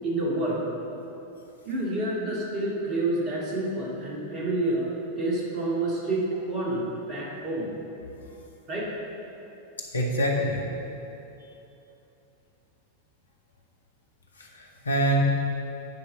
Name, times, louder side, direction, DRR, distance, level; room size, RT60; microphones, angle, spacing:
voice 1, 0.0-0.6 1.7-7.7 8.7-8.9, right 2 dB, 35° right, -4 dB, 2.1 m, -28 dB
voice 2, 9.8-10.6 14.4-15.2, right 1 dB, 75° left, -1 dB, 1.2 m, -26 dB
9.6 x 4.8 x 6.7 m, 2.9 s
figure-of-eight pair, 90°, 0 cm